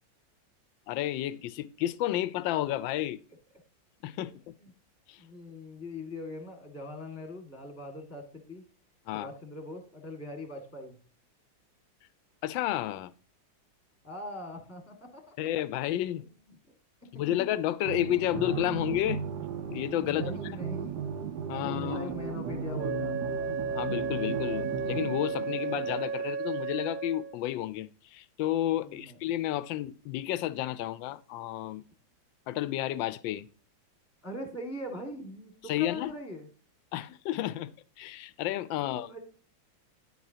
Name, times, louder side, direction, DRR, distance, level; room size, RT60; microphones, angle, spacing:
voice 1, 0.9-3.2 4.0-4.3 5.1-5.2 9.1-9.3 12.4-13.1 15.4-16.3 17.2-19.2 19.7-20.2 21.5-22.1 23.7-31.8 32.5-33.5 35.7-36.1 36.9-39.1, left 13 dB, 80° left, 1.3 m, -31 dB
voice 2, 5.2-8.6 9.1-11.0 14.0-15.3 16.5-16.6 20.0-21.0 21.6-23.3 28.8-29.2 34.2-36.5 38.7-39.2, left 1 dB, 10° left, 1.7 m, -41 dB
sound 1, 17.8-26.0, right 5 dB, 65° right, 1.6 m, -36 dB
Wind instrument woodwind instrument, 22.8-27.4, right 5 dB, 85° right, 1.4 m, -34 dB
9.9 x 8.2 x 2.7 m
omnidirectional pair, 2.0 m